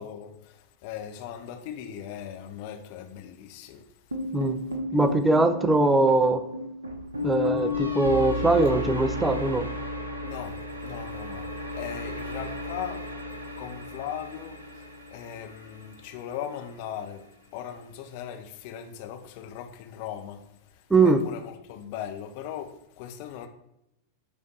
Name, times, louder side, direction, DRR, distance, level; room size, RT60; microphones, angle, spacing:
voice 1, 0.0-3.8 10.2-11.5 11.7-13.0 13.6-17.2 17.5-20.4 20.7-22.7 23.0-23.5, left 9 dB, 45° left, 0.6 m, -39 dB
sound 1, 4.1-16.3, left 1 dB, 75° right, 0.7 m, -33 dB
voice 2, 4.9-6.4 7.2-9.7 20.9-21.2, right 2 dB, 10° right, 0.4 m, -21 dB
9.6 x 3.5 x 3.1 m
figure-of-eight pair, 90°, 0 cm